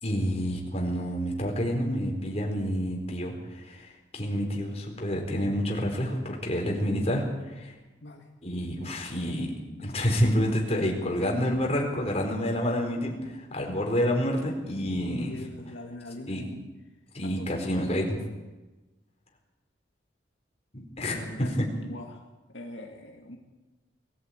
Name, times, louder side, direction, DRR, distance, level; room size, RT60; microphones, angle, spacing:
voice 1, 0.0-7.7 8.4-9.5 9.8-15.3 16.3-16.4 17.1-18.2 20.7-21.5, equal, 35° left, 1 dB, 4.5 m, -28 dB
voice 2, 14.8-16.5 17.2-17.5 21.1-21.5 21.8-23.4, left 1 dB, 75° left, 1 dB, 2.3 m, -43 dB
22.0 x 14.5 x 9.1 m, 1.2 s
head